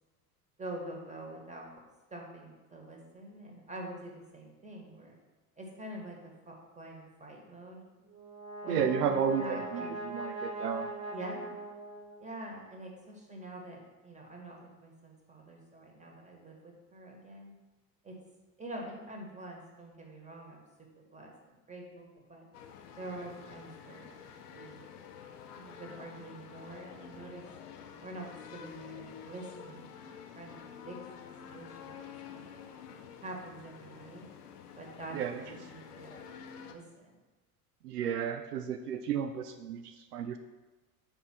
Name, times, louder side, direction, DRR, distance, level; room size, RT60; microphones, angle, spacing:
voice 1, 0.6-1.8 2.1-5.2 5.6-7.8 8.6-10.1 11.1-11.5 12.2-17.5 18.0-18.2 18.6-20.6 20.9-22.5 23.0-24.2 24.5-24.9 25.5-27.4 28.0-29.9 30.4-31.0 31.4-32.0 32.3-32.6 33.2-34.3 34.8-36.2 36.7-37.2, right 1 dB, 15° right, 0 dB, 1.7 m, -45 dB
Brass instrument, 8.0-12.5, right 2 dB, 30° right, 1.6 m, -41 dB
voice 2, 8.7-10.9 35.1-35.4 37.8-40.4, right 7 dB, 80° right, 7 dB, 0.5 m, -32 dB
sound 1, 22.5-36.7, left 7 dB, 80° left, 0.7 m, -49 dB
5.3 x 4.4 x 6.1 m, 1.2 s
figure-of-eight pair, 70°, 47 cm